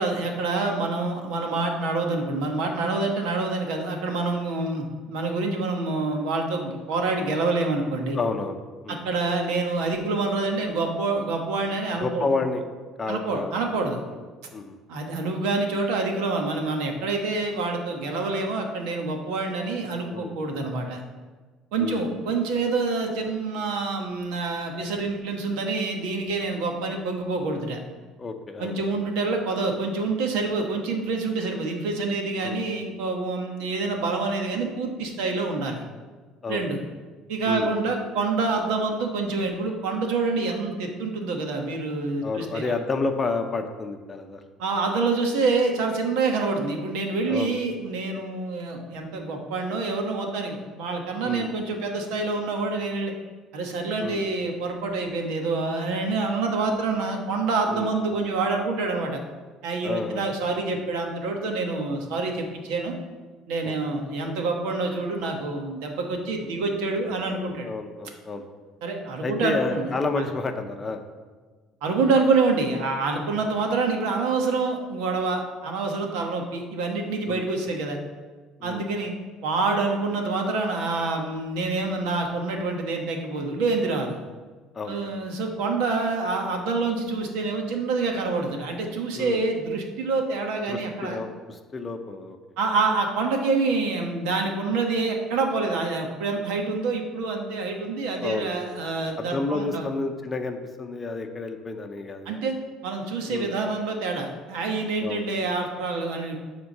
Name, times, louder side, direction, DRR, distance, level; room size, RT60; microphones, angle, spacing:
voice 1, 0.0-8.2 8.9-12.3 13.1-14.0 14.9-21.0 21.7-27.8 28.6-35.8 36.5-36.8 37.3-42.7 44.6-53.1 53.5-59.2 59.6-62.9 63.5-67.7 68.8-69.9 70.2-70.3 71.8-78.0 78.6-79.1 79.4-84.2 84.9-91.2 92.6-99.9 102.2-102.6 102.8-106.4, right 3 dB, 90° right, 3 dB, 1.3 m, -27 dB
voice 2, 8.1-8.6 8.8-9.0 12.0-12.6 13.0-13.5 14.1-14.2 14.5-14.8 20.1-20.6 21.8-22.0 28.2-28.8 32.4-32.6 36.4-36.7 37.4-37.7 42.2-44.4 47.3-47.6 51.2-51.5 54.0-54.2 57.7-57.9 59.8-60.3 63.6-64.0 67.6-68.4 69.2-71.0 73.3-73.6 77.3-77.4 78.6-78.9 84.7-85.1 89.1-89.4 90.7-92.4 98.2-98.5 99.2-102.4 103.3-103.5 105.0-105.2, left 3 dB, 20° left, 6 dB, 0.7 m, -30 dB
10.0 x 3.7 x 6.6 m, 1.4 s
cardioid pair, 150°, 0 cm